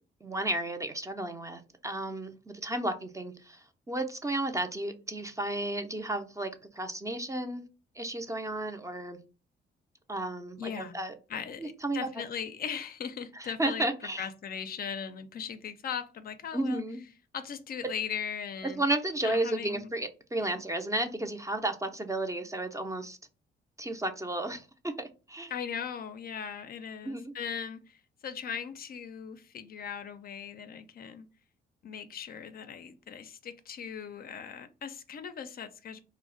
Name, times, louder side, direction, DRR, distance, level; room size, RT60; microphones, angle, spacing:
voice 1, 0.2-7.6 7.9-9.2 10.1-11.1 11.6-12.1 13.3-14.3 16.5-17.0 18.8-23.2 23.8-25.5 27.0-27.3, right 1 dB, 15° right, 0.4 m, -33 dB
voice 2, 10.6-11.0 11.3-13.9 14.2-16.8 17.3-18.8 19.2-19.9 20.4-20.6 25.5-31.3 31.8-36.0, left 7 dB, 50° left, 0.4 m, -39 dB
2.3 x 2.0 x 3.7 m
cardioid pair, 90°, 20 cm